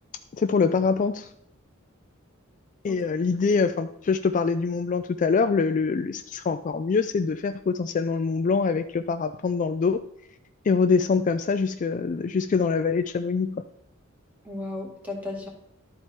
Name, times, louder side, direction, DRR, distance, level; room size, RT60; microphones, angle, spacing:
voice 1, 0.3-1.3 2.8-10.0 10.6-13.6, left 5 dB, 40° left, 9 dB, 0.3 m, -24 dB
voice 2, 2.9-3.3 14.4-15.5, left 2 dB, 10° right, -1 dB, 2.0 m, -35 dB
12.0 x 4.5 x 4.3 m, 0.79 s
head